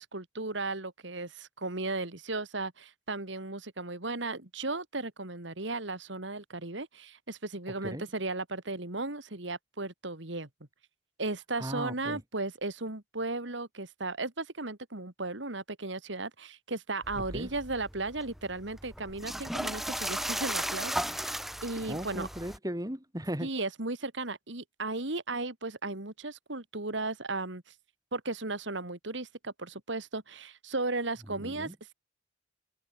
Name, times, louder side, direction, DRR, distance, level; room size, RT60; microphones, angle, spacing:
voice 1, 0.0-10.5 11.2-22.3 23.4-27.6 28.1-31.9, right 2 dB, 70° right, 2.6 m, -36 dB
voice 2, 11.6-12.2 17.3-17.5 21.8-23.5 31.4-31.8, equal, 20° right, 3.5 m, -37 dB
sound 1, 17.0-22.6, equal, ahead, 1.6 m, -36 dB
head